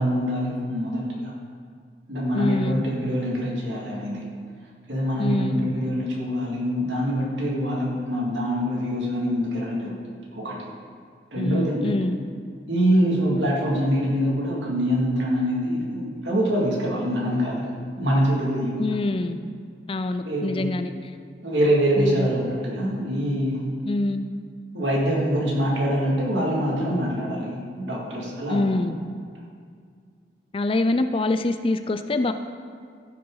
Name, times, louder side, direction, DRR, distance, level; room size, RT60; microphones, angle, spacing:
voice 1, 0.0-1.3 2.1-4.2 4.9-10.0 10.3-10.7 11.3-12.0 12.7-17.7 18.0-18.8 20.3-20.7 21.4-23.7 24.7-28.8, equal, 80° right, -3 dB, 2.3 m, -24 dB
voice 2, 2.3-2.8 5.2-5.6 11.3-12.2 18.8-19.4 19.9-20.9 22.0-22.3 23.8-24.3 28.5-29.0 30.5-32.3, left 2 dB, 30° left, 9 dB, 0.4 m, -25 dB
15.0 x 6.7 x 3.9 m, 2.1 s
head